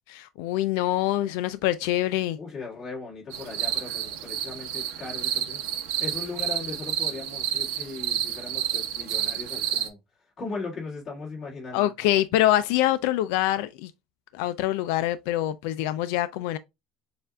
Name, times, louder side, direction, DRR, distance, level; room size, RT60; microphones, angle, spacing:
voice 1, 0.1-2.4 11.7-13.9 14.3-16.6, left 14 dB, 80° left, 0.3 m, -25 dB
voice 2, 2.4-5.6 6.0-10.0 10.4-11.9, left 4 dB, 25° left, 2.0 m, -38 dB
sound 1, 3.3-9.9, right 10 dB, 80° right, 0.8 m, -30 dB
6.7 x 2.5 x 2.2 m
cardioid pair, 165°, 0 cm